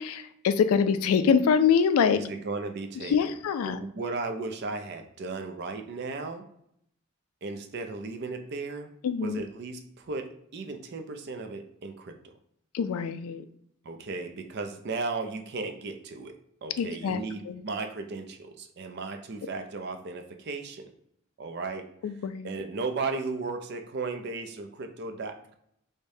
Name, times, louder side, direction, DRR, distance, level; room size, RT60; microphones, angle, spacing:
voice 1, 0.0-2.2 3.0-3.8 9.0-9.4 12.7-13.4 16.8-17.2 17.5-17.6 22.0-22.5, left 6 dB, 90° left, 12 dB, 0.3 m, -24 dB
voice 2, 2.1-3.3 3.6-6.4 7.4-8.9 9.2-12.3 13.8-20.9 21.4-21.9 22.4-25.5, right 3 dB, 50° right, 6 dB, 0.4 m, -35 dB
4.8 x 2.1 x 2.6 m, 0.72 s
head